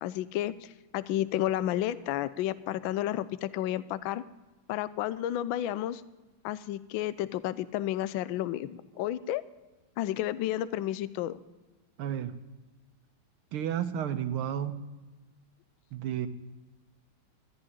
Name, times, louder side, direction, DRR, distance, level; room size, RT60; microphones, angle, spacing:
voice 1, 0.0-4.2 4.7-6.0 6.4-9.4 10.0-11.4, left 13 dB, 75° left, 16 dB, 1.3 m, -31 dB
voice 2, 12.0-12.3 13.5-14.8 15.9-16.3, right 10 dB, 85° right, 9 dB, 1.8 m, -31 dB
13.5 x 6.3 x 9.9 m, 1.2 s
omnidirectional pair, 2.3 m